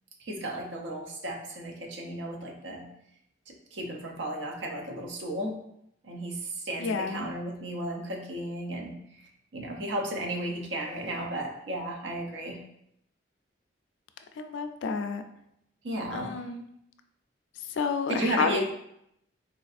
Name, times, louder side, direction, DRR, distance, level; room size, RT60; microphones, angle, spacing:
voice 1, 0.2-2.8 3.5-5.6 6.0-9.0 9.5-12.6 15.8-16.3 18.1-18.6, right 1 dB, 75° right, 1 dB, 0.6 m, -34 dB
voice 2, 6.8-7.3 14.4-15.2 16.1-16.6 17.7-18.6, left 5 dB, 80° left, 7 dB, 0.3 m, -30 dB
3.8 x 2.4 x 2.5 m, 0.76 s
head